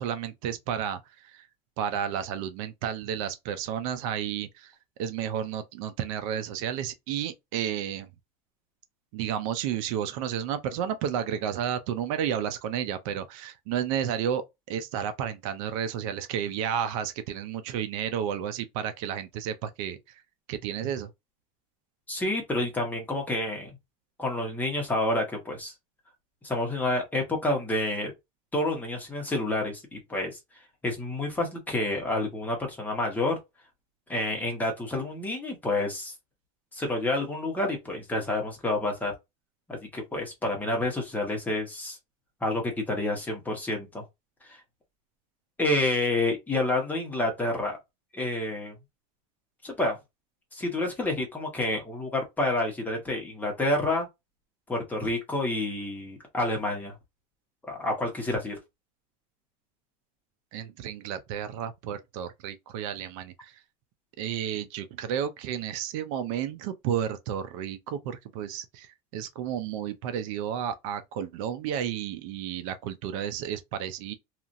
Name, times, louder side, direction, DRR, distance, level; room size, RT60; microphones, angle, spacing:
voice 1, 0.0-1.5 1.8-4.7 5.0-8.1 9.1-20.0 20.5-21.1 60.5-63.5 64.2-74.1, right 9 dB, 65° right, 0.5 m, -32 dB
voice 2, 22.1-23.7 24.2-25.7 26.4-28.1 28.5-30.4 30.8-33.4 34.1-36.1 36.7-39.1 39.7-42.0 42.4-44.0 44.5-44.6 45.6-47.8 48.1-48.7 49.6-50.0 50.5-54.1 54.7-56.9 57.7-58.5, left 2 dB, 10° left, 1.0 m, -29 dB
2.8 x 2.4 x 2.5 m
supercardioid pair, 150°, 19 cm